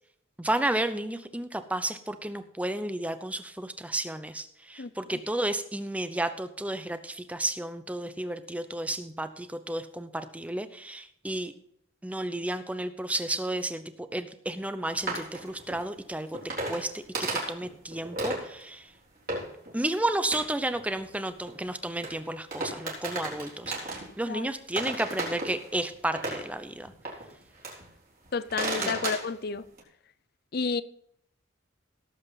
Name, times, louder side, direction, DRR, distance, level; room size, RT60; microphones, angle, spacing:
voice 1, 0.4-11.5 12.0-16.3 16.7-18.9 19.7-26.9 28.8-28.9, right 1 dB, 5° right, 0.7 m, -32 dB
voice 2, 4.8-5.2 24.3-24.5 28.3-29.7 30.5-30.8, left 5 dB, 50° left, 0.6 m, -31 dB
sound 1, 15.0-18.6 19.3-19.8 20.0-22.2 22.5-24.4 24.8-27.9 28.3-29.8, right 2 dB, 45° right, 4.0 m, -35 dB
17.5 x 7.8 x 4.1 m
head